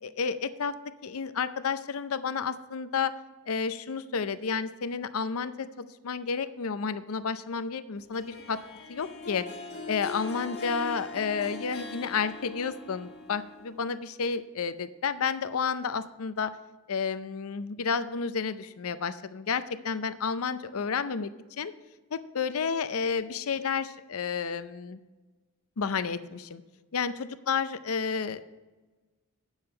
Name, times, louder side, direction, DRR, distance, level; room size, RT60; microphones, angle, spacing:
voice 1, 0.0-0.7 1.0-3.1 3.5-8.6 8.9-9.4 9.9-16.5 16.9-21.3 21.6-21.7 22.1-25.0 25.8-26.6 26.9-28.4, left 5 dB, 75° left, 13 dB, 0.6 m, -31 dB
Harp, 8.1-13.9, left 3 dB, 50° left, 1.8 m, -41 dB
9.7 x 7.2 x 5.5 m, 1.2 s
head